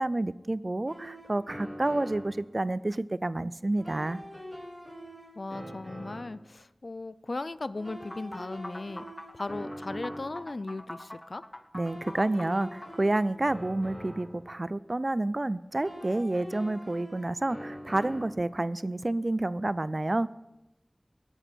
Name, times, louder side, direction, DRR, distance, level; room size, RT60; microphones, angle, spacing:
voice 1, 0.0-4.2 11.7-20.3, right 2 dB, 55° right, 17 dB, 0.4 m, -29 dB
sound 1, 0.9-2.4 3.8-6.4 7.8-10.4 11.8-14.4 15.8-18.4, equal, 5° right, 5.8 m, -43 dB
voice 2, 5.4-9.1 9.3-11.4, left 2 dB, 80° left, 15 dB, 0.4 m, -37 dB
sound 2, 8.1-13.2, left 1 dB, 30° left, 0.9 m, -44 dB
21.0 x 8.0 x 4.5 m, 0.96 s
wide cardioid pair, 40°, 0 cm